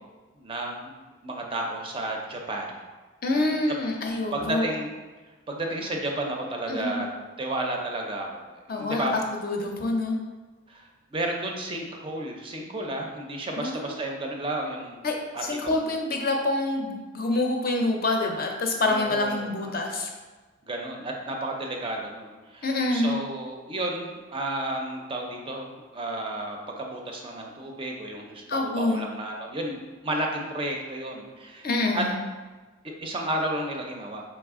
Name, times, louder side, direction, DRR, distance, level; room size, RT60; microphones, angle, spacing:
voice 1, 0.4-0.9 1.2-2.7 3.3-3.6 4.3-4.9 5.5-7.1 7.4-9.1 10.7-15.0 15.3-16.0 18.8-19.7 20.7-32.0 32.8-34.2, right 1 dB, 25° right, 1 dB, 0.4 m, -32 dB
voice 2, 3.2-4.7 6.7-7.0 8.7-10.2 13.6-13.9 15.0-20.1 22.6-23.2 28.5-29.0 31.6-32.2, left 2 dB, 45° left, 2 dB, 0.5 m, -26 dB
4.1 x 3.2 x 3.5 m, 1.3 s
head